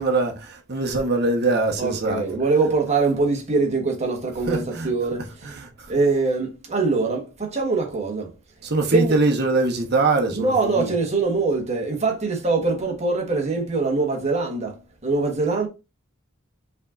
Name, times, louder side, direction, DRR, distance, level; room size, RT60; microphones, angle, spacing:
voice 1, 0.0-2.2 4.5-4.9 5.5-5.9 8.6-10.9, right 3 dB, 55° right, 1.1 m, -23 dB
voice 2, 1.8-5.6 5.9-8.3 8.9-9.1 10.3-15.7, right 3 dB, 35° right, 1.3 m, -23 dB
5.5 x 3.6 x 2.5 m
head